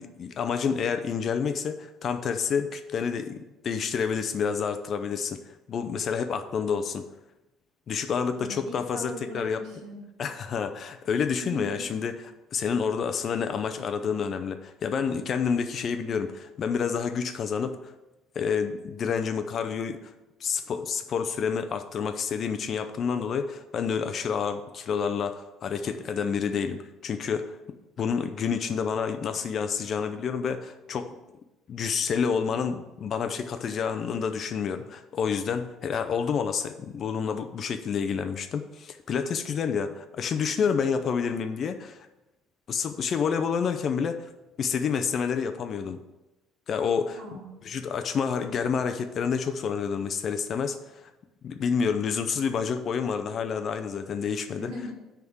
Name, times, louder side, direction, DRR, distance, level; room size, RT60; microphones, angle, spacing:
voice 1, 0.0-5.4 5.7-7.0 7.9-9.6 10.2-12.1 12.5-17.8 18.4-20.1 20.4-27.6 28.0-31.2 31.7-42.1 42.7-44.3 44.6-46.0 46.7-47.2 47.6-51.1 51.4-54.7, left 6 dB, 40° left, 8 dB, 0.5 m, -29 dB
voice 2, 8.4-10.0 11.4-11.9 47.2-47.7 54.6-54.9, equal, 70° right, -5 dB, 1.7 m, -39 dB
10.0 x 3.6 x 7.1 m, 1.0 s
cardioid pair, 145°, 0 cm